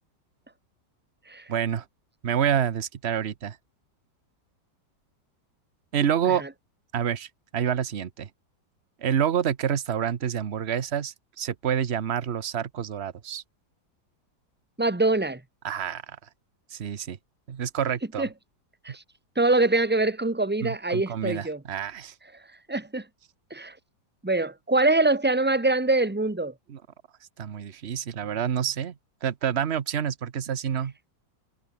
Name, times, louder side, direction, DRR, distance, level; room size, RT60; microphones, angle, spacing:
voice 1, 1.5-1.8 2.2-3.6 5.9-6.4 6.9-8.3 9.0-13.4 15.6-16.2 16.7-17.2 17.5-18.3 20.6-22.1 26.7-26.8 27.4-30.9, right 8 dB, 45° right, 1.1 m, -28 dB
voice 2, 14.8-15.4 18.2-18.3 18.8-19.0 19.4-21.6 22.7-23.0 23.5-23.7 24.2-26.5, right 2 dB, 10° right, 0.7 m, -23 dB
omnidirectional pair, 2.0 m